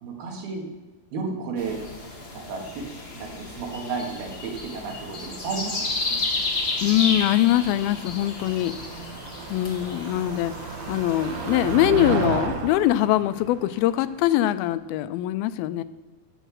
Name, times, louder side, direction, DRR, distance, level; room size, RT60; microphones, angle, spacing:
voice 1, 0.0-0.7 1.1-1.8 2.3-2.9 3.1-6.2 9.8-10.4, right 4 dB, 90° right, 2 dB, 3.9 m, -33 dB
sound 1, 1.6-11.8, left 3 dB, 45° left, 0.7 m, -32 dB
Motor vehicle (road), 4.3-14.7, right 6 dB, 65° right, 1.9 m, -35 dB
voice 2, 6.8-8.8 9.5-15.8, left 13 dB, 85° left, 14 dB, 2.4 m, -23 dB
14.5 x 7.9 x 6.3 m, 1.1 s
omnidirectional pair, 4.3 m